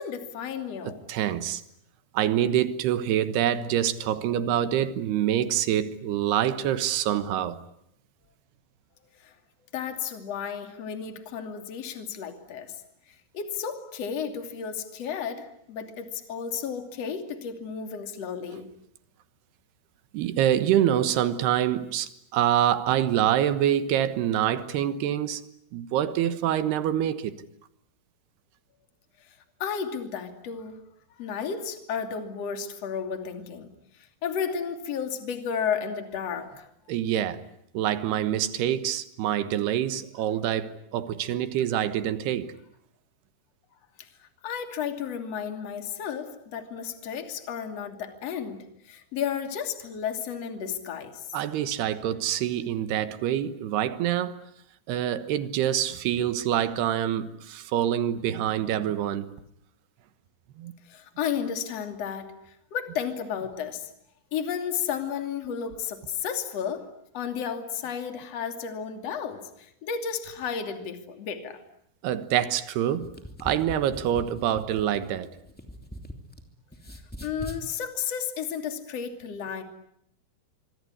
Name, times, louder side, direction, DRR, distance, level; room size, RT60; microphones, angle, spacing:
voice 1, 0.0-1.0 9.2-9.3 9.7-12.8 13.1-18.7 29.3-30.8 31.2-33.7 34.2-36.7 44.0-51.4 60.9-63.9 64.3-66.9 67.1-71.6 77.2-79.6, left 7 dB, 40° left, 3.2 m, -33 dB
voice 2, 0.8-1.6 2.1-7.6 20.1-25.4 25.7-27.4 36.9-37.4 37.7-42.5 51.3-54.4 54.9-59.3 60.6-60.7 72.0-73.1 73.4-75.3, right 11 dB, 70° right, 3.0 m, -26 dB
sound 1, 73.0-76.4 76.7-77.6, equal, 5° left, 1.4 m, -41 dB
25.5 x 24.5 x 9.7 m
omnidirectional pair, 5.3 m